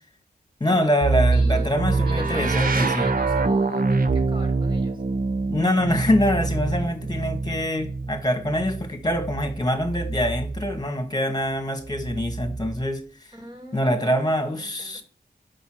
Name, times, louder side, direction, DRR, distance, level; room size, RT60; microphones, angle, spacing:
voice 1, 0.6-3.1 5.5-13.0 13.7-15.0, equal, 25° left, 1.9 m, -24 dB
sound 1, 1.0-10.8 11.8-12.9, right 3 dB, 60° right, 0.9 m, -25 dB
voice 2, 1.3-1.7 2.1-5.0 13.3-14.2 14.4-15.0, equal, 30° right, 2.9 m, -39 dB
5.5 x 5.4 x 6.4 m
cardioid pair, 45°, 16 cm